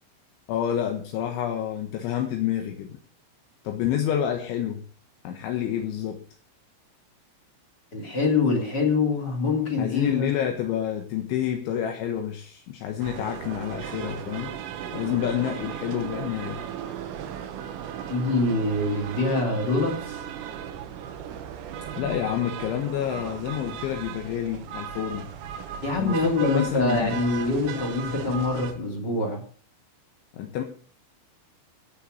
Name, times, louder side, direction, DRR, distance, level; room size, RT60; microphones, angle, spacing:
voice 1, 0.5-3.0 3.7-4.8 5.3-6.2 9.8-14.6 14.9-16.6 21.9-25.3 26.0-27.1 30.3-30.6, left 10 dB, 75° left, 3 dB, 3.5 m, -28 dB
voice 2, 7.9-10.3 18.1-20.3 25.8-29.4, left 3 dB, 25° left, 1 dB, 3.4 m, -25 dB
sound 1, 13.0-28.7, right 8 dB, 80° right, 4.1 m, -36 dB
17.5 x 6.8 x 6.8 m, 0.44 s
omnidirectional pair, 5.8 m